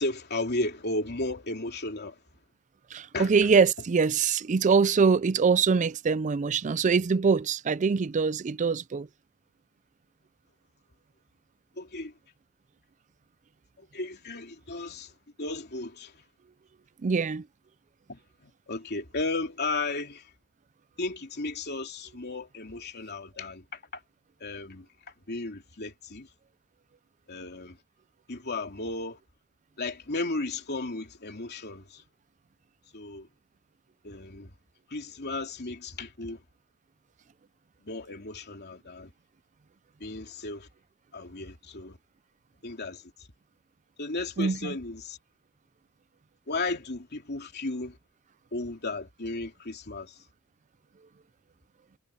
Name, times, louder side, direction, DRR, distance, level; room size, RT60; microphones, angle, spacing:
voice 1, 0.0-2.2 3.1-3.3 11.8-12.1 13.8-15.1 15.4-16.2 18.1-20.3 21.0-24.0 24.4-24.9 25.3-26.3 27.3-27.8 28.3-29.2 29.8-32.0 32.9-33.3 34.0-34.5 34.9-36.4 37.8-39.1 40.0-40.7 41.1-42.0 42.6-43.0 44.0-45.2 46.5-48.0 48.5-50.2, left 2 dB, 50° left, 3.0 m, -34 dB
voice 2, 2.9-9.1 17.0-17.4 44.4-44.7, right 5 dB, 35° right, 0.4 m, -24 dB
head